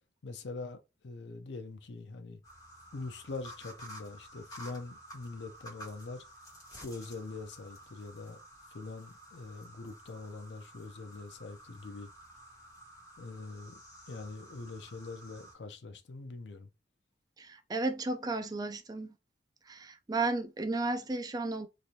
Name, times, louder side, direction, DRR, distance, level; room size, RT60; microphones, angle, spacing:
voice 1, 0.2-0.8 1.0-2.4 2.9-6.2 6.7-8.4 8.7-12.1 13.2-13.8 14.1-16.7, left 3 dB, 80° left, 0.5 m, -43 dB
sound 1, 2.4-15.5, equal, 20° left, 1.4 m, -52 dB
voice 2, 17.4-19.1 19.7-21.7, right 3 dB, 20° right, 0.4 m, -33 dB
3.1 x 2.5 x 2.7 m
head